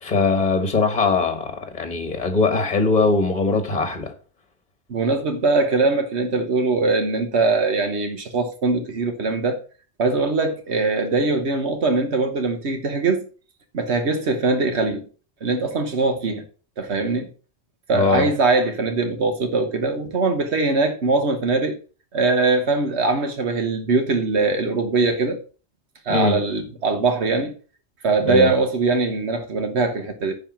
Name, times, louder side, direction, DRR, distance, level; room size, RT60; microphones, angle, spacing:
voice 1, 0.0-4.1 17.9-18.3 26.1-26.4 28.2-28.5, left 4 dB, 40° left, 1.5 m, -21 dB
voice 2, 4.9-9.6 10.0-13.3 13.7-15.0 15.4-16.4 16.8-17.3 17.9-21.8 22.1-25.4 26.0-27.5 28.0-30.3, right 3 dB, 80° right, 1.4 m, -21 dB
10.5 x 3.7 x 7.3 m
omnidirectional pair, 1.1 m